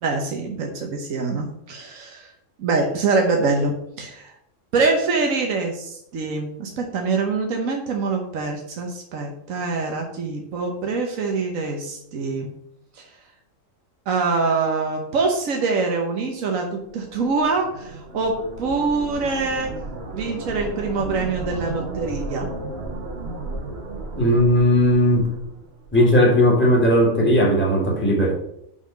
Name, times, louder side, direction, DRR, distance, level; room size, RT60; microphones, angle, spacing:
voice 1, 0.0-2.3 2.6-4.3 4.7-12.5 12.9-13.1 14.1-19.7 20.1-22.5, right 4 dB, 85° right, 2 dB, 1.4 m, -24 dB
sound 1, 16.8-26.1, right 2 dB, 55° right, 1.3 m, -34 dB
voice 2, 24.1-25.3 25.9-28.3, equal, 10° left, -2 dB, 1.9 m, -17 dB
6.1 x 5.6 x 6.3 m, 0.76 s
omnidirectional pair, 1.4 m